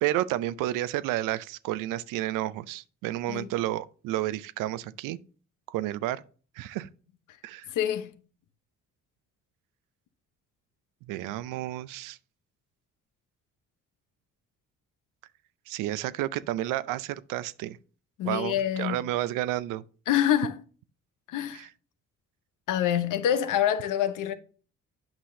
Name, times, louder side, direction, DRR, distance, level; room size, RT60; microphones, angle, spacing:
voice 1, 0.0-5.2 5.7-6.2 6.6-6.9 7.4-7.7 11.1-12.2 15.7-17.8 18.2-19.8 21.5-21.7, right 14 dB, 85° right, 0.5 m, -31 dB
voice 2, 7.7-8.1 18.2-19.1 20.1-20.6 21.3-21.7 22.7-24.3, left 10 dB, 80° left, 0.9 m, -26 dB
8.8 x 5.6 x 2.6 m
supercardioid pair, 60°, 31 cm